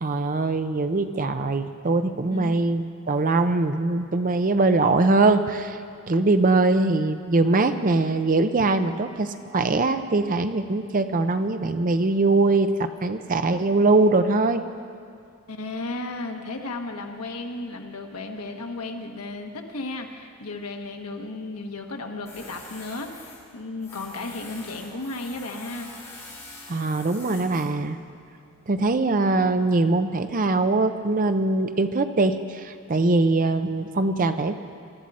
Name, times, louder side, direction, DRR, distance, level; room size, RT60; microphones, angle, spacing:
voice 1, 0.0-5.8 6.1-14.6 26.7-28.0 28.7-34.6, right 2 dB, 40° right, 9 dB, 0.6 m, -22 dB
voice 2, 15.5-25.9, left 2 dB, 90° left, 3 dB, 1.4 m, -34 dB
Tools, 22.3-28.8, left 2 dB, 15° left, 4.5 m, -45 dB
20.0 x 12.5 x 4.2 m, 2.4 s
head